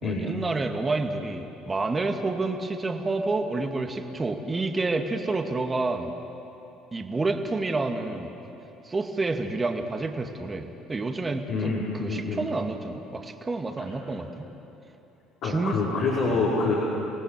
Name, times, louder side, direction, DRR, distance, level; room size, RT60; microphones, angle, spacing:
voice 1, 0.0-6.1 6.9-8.3 8.8-14.5 15.4-15.8 16.2-16.4, right 3 dB, 25° right, 5 dB, 2.2 m, -29 dB
voice 2, 11.5-12.4 15.4-16.7, left 3 dB, 65° left, -7 dB, 5.2 m, -26 dB
29.0 x 18.0 x 7.6 m, 3.0 s
hypercardioid pair, 65°, 0 cm